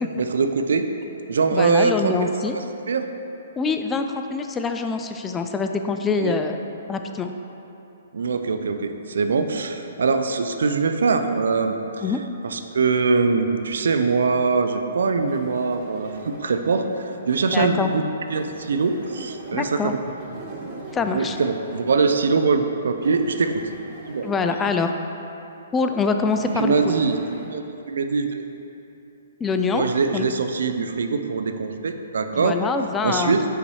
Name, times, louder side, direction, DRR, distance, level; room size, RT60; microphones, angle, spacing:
voice 1, 0.1-0.9 1.3-3.1 6.2-6.3 8.1-12.0 12.4-20.0 21.1-23.6 24.1-24.3 26.6-27.2 27.5-28.4 29.7-32.6 33.0-33.4, right 4 dB, 75° right, 7 dB, 0.4 m, -23 dB
voice 2, 1.5-2.6 3.6-6.6 6.9-7.3 12.0-12.2 17.5-17.9 19.5-19.9 20.9-21.4 24.2-24.9 25.7-26.9 29.4-29.9 30.1-30.3 32.4-33.3, left 4 dB, 15° left, 6 dB, 0.3 m, -24 dB
sound 1, 15.2-17.4 18.3-22.4 23.0-25.2 26.2-27.5, right 2 dB, 30° right, 1.0 m, -41 dB
5.6 x 4.0 x 4.8 m, 2.9 s
hypercardioid pair, 135°, 0 cm